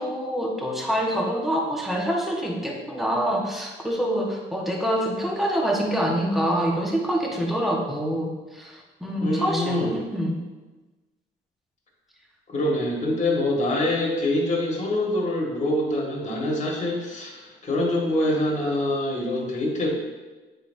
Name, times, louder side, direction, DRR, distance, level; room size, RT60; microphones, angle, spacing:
voice 1, 0.0-10.4, equal, ahead, -2 dB, 1.2 m, -26 dB
voice 2, 9.2-10.0 12.5-20.0, left 1 dB, 35° left, -2 dB, 1.8 m, -25 dB
8.8 x 4.0 x 2.7 m, 1.2 s
cardioid pair, 90°, 20 cm